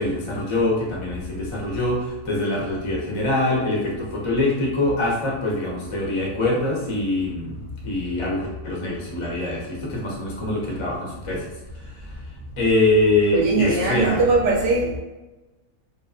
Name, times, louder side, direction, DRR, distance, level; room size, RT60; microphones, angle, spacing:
voice 1, 0.0-7.5 7.8-11.4 12.6-14.2, left 2 dB, 45° left, -4 dB, 0.4 m, -24 dB
voice 2, 13.3-15.0, right 3 dB, 65° right, -1 dB, 0.8 m, -20 dB
2.7 x 2.0 x 2.4 m, 1.1 s
omnidirectional pair, 1.5 m